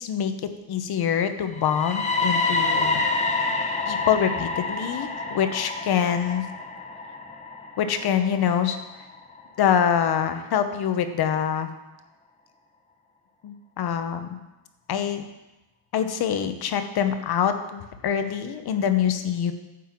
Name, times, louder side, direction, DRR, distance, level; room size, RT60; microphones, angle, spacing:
voice 1, 0.0-3.0 3.9-6.5 7.8-8.8 9.6-11.7 13.4-14.4 14.9-15.2 15.9-19.5, left 8 dB, 50° left, 9 dB, 0.9 m, -25 dB
sound 1, 1.5-9.4, left 3 dB, 15° left, 1.1 m, -28 dB
9.5 x 5.6 x 7.4 m, 1.0 s
cardioid pair, 155°, 48 cm